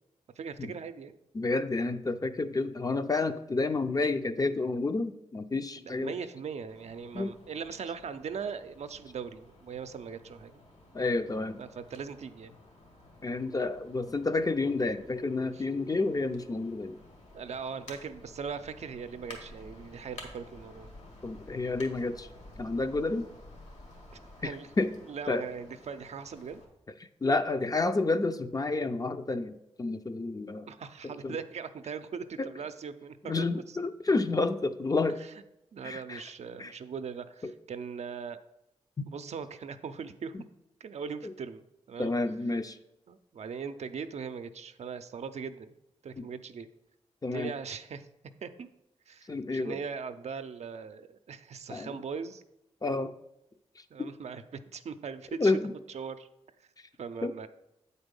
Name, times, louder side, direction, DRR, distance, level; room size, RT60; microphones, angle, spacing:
voice 1, 0.4-1.2 5.8-10.6 11.6-12.6 15.5-15.6 17.3-20.9 24.4-24.7 25.1-26.6 30.7-33.6 35.2-35.3 35.7-38.4 39.1-40.3 40.8-42.1 43.1-45.7 46.0-46.7 47.3-48.1 48.4-48.7 49.1-52.4 53.9-54.4 54.7-55.5 55.9-56.3 57.0-57.5, right 6 dB, 65° right, 10 dB, 0.5 m, -40 dB
voice 2, 1.3-6.1 7.1-7.3 10.9-11.6 13.2-17.0 21.2-22.3 22.6-23.3 24.4-24.9 25.3-25.4 27.2-30.7 31.0-31.4 32.4-32.5 33.2-35.2 35.8-36.2 36.6-36.7 37.4-37.5 40.3-40.4 41.2-41.3 42.0-42.8 46.2-46.3 47.2-47.5 49.3-49.8 51.7-52.0 52.8-53.1 54.0-54.1 55.4-55.7 57.2-57.3, left 3 dB, 30° left, 9 dB, 0.5 m, -30 dB
sound 1, 6.7-26.6, left 2 dB, 70° left, 1.9 m, -52 dB
7.9 x 4.1 x 5.3 m, 0.85 s
cardioid pair, 55°, 12 cm